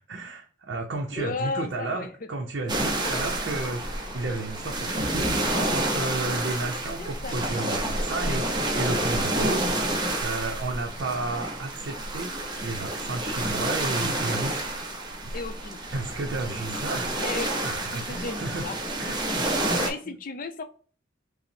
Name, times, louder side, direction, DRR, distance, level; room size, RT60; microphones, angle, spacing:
voice 1, 0.0-12.4 12.6-14.7 15.2-15.4 15.9-18.6 19.0-20.1, right 2 dB, 70° right, 0 dB, 0.6 m, -33 dB
voice 2, 1.1-2.1 3.0-3.1 7.0-7.4 9.8-9.9 15.3-16.0 16.5-18.8 19.8-20.6, left 3 dB, 45° left, 9 dB, 0.5 m, -35 dB
sound 1, 2.7-19.9, right 1 dB, 25° right, 0.7 m, -29 dB
5.6 x 2.0 x 2.6 m, 0.42 s
head